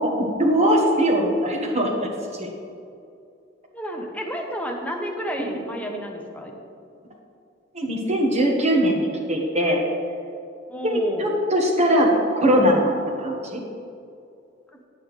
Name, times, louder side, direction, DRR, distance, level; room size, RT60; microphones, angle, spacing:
voice 1, 0.0-1.9 2.4-2.5 7.7-9.8 10.8-13.6, equal, 35° right, -1 dB, 1.2 m, -21 dB
voice 2, 3.7-6.6 10.7-11.3, equal, 5° left, 1 dB, 0.7 m, -30 dB
9.5 x 7.0 x 3.1 m, 2.5 s
head